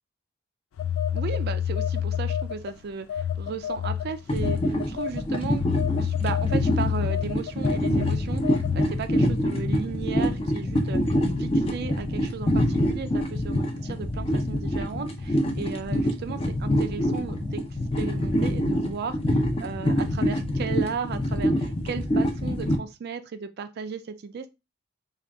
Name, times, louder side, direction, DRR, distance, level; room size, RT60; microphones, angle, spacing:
Telephone, 0.8-2.7 3.1-8.9, left 9 dB, 85° left, 0.3 m, -28 dB
voice 1, 1.1-5.7 6.0-17.6 18.0-24.5, right 5 dB, 50° right, 0.3 m, -35 dB
sound 1, 4.3-22.8, equal, 30° left, 0.5 m, -26 dB
3.7 x 2.3 x 3.4 m
head